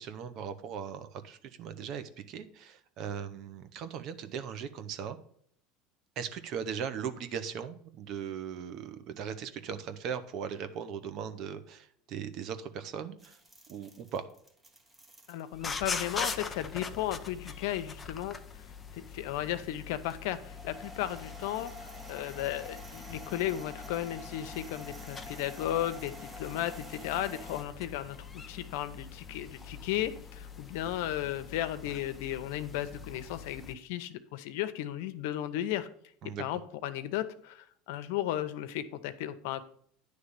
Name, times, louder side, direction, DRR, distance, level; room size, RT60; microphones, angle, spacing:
voice 1, 0.0-5.2 6.2-13.4 13.7-14.3 36.2-36.4, right 7 dB, 55° right, 11 dB, 0.8 m, -39 dB
sound 1, 13.2-16.8 17.1-17.2 17.8-18.2 20.1-27.6, left 1 dB, 15° right, 1.2 m, -49 dB
voice 2, 15.3-18.4 18.9-35.9 36.2-39.6, left 12 dB, 75° left, 11 dB, 0.7 m, -35 dB
sound 2, 15.5-33.7, left 5 dB, 20° left, 0.6 m, -43 dB
9.8 x 3.3 x 6.6 m, 0.64 s
supercardioid pair, 110°, 0 cm